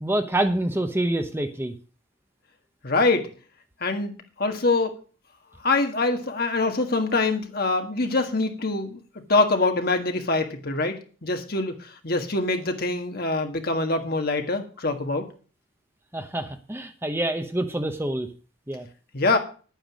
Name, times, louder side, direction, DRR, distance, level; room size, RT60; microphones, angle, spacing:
voice 1, 0.0-1.7 16.1-18.3 18.7-18.9, right 1 dB, 10° right, 7 dB, 0.8 m, -26 dB
voice 2, 2.8-3.3 3.8-4.9 5.6-9.0 9.3-15.3 19.1-19.4, left 3 dB, 50° left, 5 dB, 1.8 m, -24 dB
9.9 x 9.1 x 6.3 m, 0.39 s
head